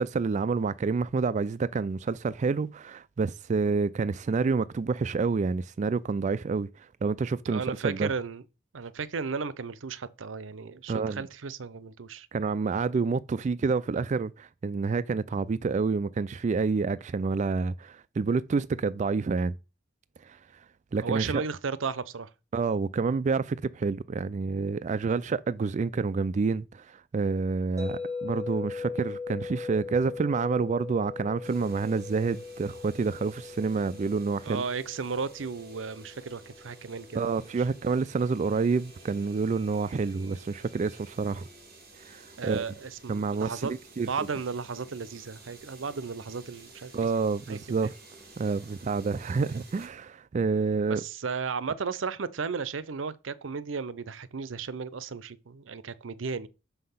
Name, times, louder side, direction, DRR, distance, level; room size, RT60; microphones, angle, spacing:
voice 1, 0.0-6.7 7.0-8.1 10.9-11.2 12.3-19.5 20.3-20.4 20.9-21.4 22.5-34.6 37.1-41.5 42.1-42.6 43.1-43.6 44.0-44.1 46.9-47.9 48.4-51.0, right 4 dB, 40° right, 0.3 m, -28 dB
voice 2, 7.4-8.4 8.7-12.3 21.0-22.3 34.4-37.3 42.4-43.7 44.0-47.1 47.5-47.9 50.9-56.5, right 5 dB, 85° right, 0.6 m, -34 dB
sound 1, 27.8-37.9, left 4 dB, 20° right, 2.5 m, -40 dB
sound 2, 31.4-49.9, right 2 dB, 55° right, 3.5 m, -52 dB
6.3 x 5.7 x 5.7 m
head